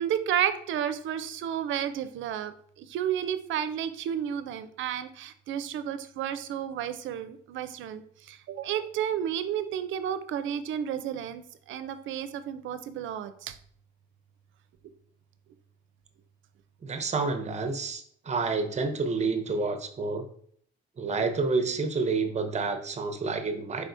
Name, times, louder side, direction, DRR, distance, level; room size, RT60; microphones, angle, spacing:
voice 1, 0.0-13.6, right 9 dB, 75° right, 11 dB, 0.4 m, -32 dB
voice 2, 16.8-20.2 21.0-23.9, right 4 dB, 35° right, 7 dB, 0.7 m, -29 dB
4.7 x 3.4 x 2.6 m, 0.62 s
cardioid pair, 90°, 20 cm